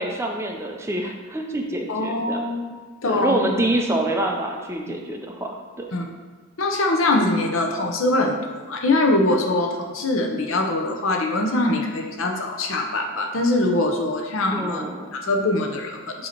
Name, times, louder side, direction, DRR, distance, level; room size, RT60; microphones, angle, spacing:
voice 1, 0.0-2.4 3.0-5.9 14.5-15.1, right 1 dB, 10° right, 1 dB, 0.4 m, -26 dB
voice 2, 1.9-3.5 4.9-5.0 5.9-6.1 6.6-14.9 15.1-16.3, left 2 dB, 65° left, 2 dB, 0.7 m, -23 dB
7.6 x 2.8 x 4.4 m, 1.4 s
head